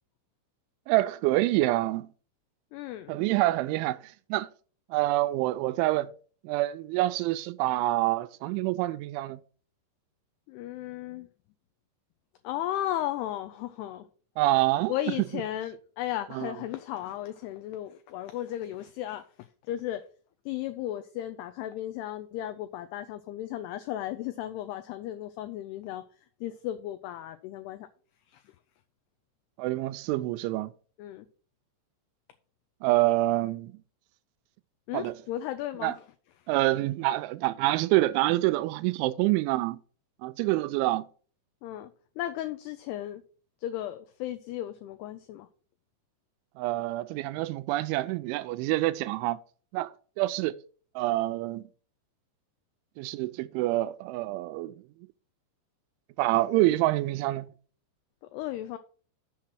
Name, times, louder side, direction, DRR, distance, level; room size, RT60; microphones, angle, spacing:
voice 1, 0.9-2.1 3.1-4.5 4.9-6.1 6.4-9.4 14.4-14.9 16.3-16.5 29.6-30.7 32.8-33.7 34.9-35.2 35.8-35.9 36.5-39.8 40.2-41.1 46.6-49.4 49.7-50.5 51.0-51.6 53.0-54.7 56.2-57.5, right 17 dB, 90° right, 3.0 m, -27 dB
voice 2, 2.7-3.2 10.5-11.3 12.4-14.1 14.9-20.0 20.5-26.0 26.4-27.9 28.3-28.4 31.0-31.3 34.9-36.0 41.6-41.9 42.2-43.2 43.6-45.5 58.3-58.8, left 13 dB, 90° left, 2.3 m, -35 dB
7.4 x 5.8 x 6.2 m
omnidirectional pair, 5.4 m